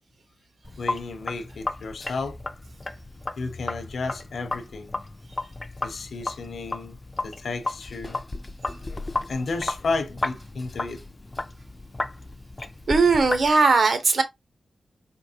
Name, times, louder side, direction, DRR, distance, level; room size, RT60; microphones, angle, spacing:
Sink (filling or washing), 0.6-13.5, left 2 dB, 20° left, 0.3 m, -34 dB
voice 1, 0.8-2.4 3.4-4.9 5.8-7.0 7.2-8.2 8.9-11.0, left 3 dB, 60° left, 0.7 m, -32 dB
voice 2, 12.9-14.2, right 4 dB, 50° right, 0.8 m, -19 dB
4.4 x 3.0 x 2.7 m
wide cardioid pair, 180°, 0 cm